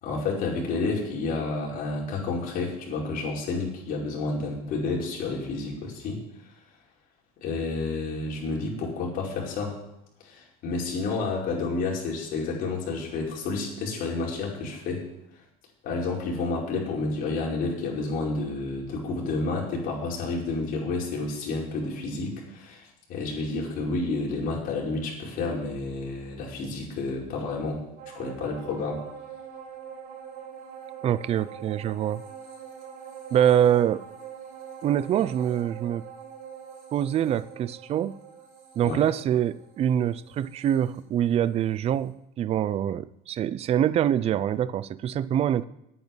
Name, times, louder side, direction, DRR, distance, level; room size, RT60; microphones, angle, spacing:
voice 1, 0.0-6.2 7.4-9.8 10.2-15.0 15.8-27.8 28.1-29.0 38.8-39.0, left 3 dB, 50° left, -3 dB, 5.2 m, -30 dB
sound 1, 28.0-41.7 42.0-42.1, right 7 dB, 55° right, 5.8 m, -44 dB
voice 2, 31.0-32.2 33.3-34.0 34.8-36.0 36.9-38.2 38.8-45.6, right 10 dB, 35° right, 17 dB, 0.5 m, -25 dB
9.8 x 9.4 x 9.4 m, 0.82 s
cardioid pair, 130°, 19 cm